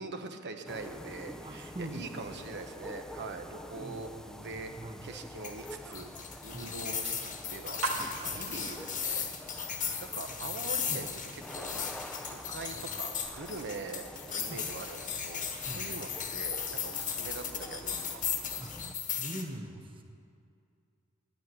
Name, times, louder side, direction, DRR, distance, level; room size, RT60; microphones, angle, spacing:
voice 1, 0.0-4.1 4.4-4.7 5.0-6.1 6.4-9.3 9.6-9.7 10.0-11.8 12.3-18.2, right 3 dB, 55° right, 5 dB, 1.0 m, -43 dB
sound 1, 0.7-18.9, left 1 dB, 5° left, 0.5 m, -47 dB
voice 2, 1.4-2.3 3.8-5.1 6.5-6.8 10.4-10.6 10.9-11.0 14.5-14.6 15.7-15.9 18.6-18.8 19.1-20.0, right 1 dB, 25° right, 3 dB, 1.0 m, -43 dB
sound 2, 5.4-19.4, left 7 dB, 40° left, 1.2 m, -36 dB
sound 3, 7.8-17.3, right 2 dB, 90° right, 1.6 m, -45 dB
10.5 x 9.3 x 9.3 m, 2.4 s
head